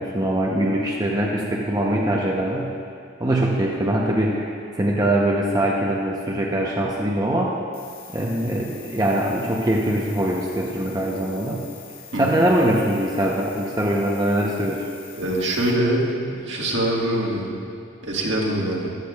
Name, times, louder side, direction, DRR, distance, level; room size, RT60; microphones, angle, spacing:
voice 1, 0.0-2.7 3.2-4.5 4.7-7.5 8.1-11.6 12.2-14.8, right 1 dB, 20° right, -3 dB, 0.7 m, -22 dB
sound 1, 7.7-15.7, left 7 dB, 70° left, 2.2 m, -44 dB
voice 2, 15.2-17.6 18.0-18.9, right 1 dB, 60° right, -2 dB, 1.6 m, -23 dB
15.0 x 12.0 x 2.4 m, 2.3 s
head